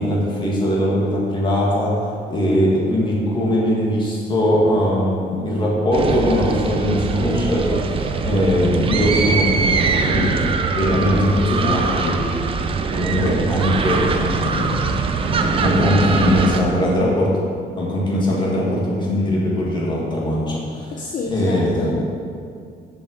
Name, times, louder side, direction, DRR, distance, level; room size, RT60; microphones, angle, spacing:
voice 1, 0.0-2.0 2.3-10.3 10.8-12.2 12.9-14.9 15.2-17.4 17.8-20.9 21.3-21.9, left 1 dB, 25° left, -4 dB, 2.2 m, -20 dB
sound 1, 5.9-16.6, right 4 dB, 30° right, 0.6 m, -22 dB
voice 2, 20.9-22.0, left 3 dB, 50° left, -1 dB, 0.8 m, -29 dB
7.6 x 6.2 x 6.6 m, 2.4 s
cardioid pair, 165°, 17 cm